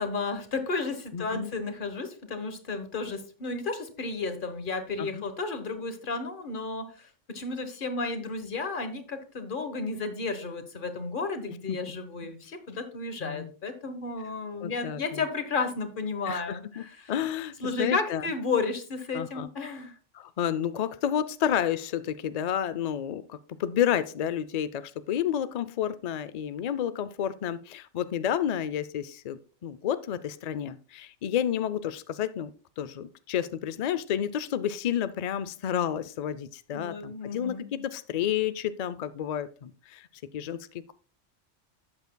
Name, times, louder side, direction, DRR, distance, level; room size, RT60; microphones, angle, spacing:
voice 1, 0.0-17.1 17.6-19.9 36.7-37.7, left 4 dB, 45° left, 9 dB, 1.2 m, -33 dB
voice 2, 1.1-1.5 5.0-5.2 11.5-11.8 12.2-12.3 13.2-13.5 14.6-15.2 16.3-18.2 19.1-19.5 20.1-40.1 40.3-40.9, left 9 dB, 75° left, 14 dB, 0.3 m, -31 dB
12.0 x 8.1 x 2.2 m, 0.37 s
omnidirectional pair, 1.3 m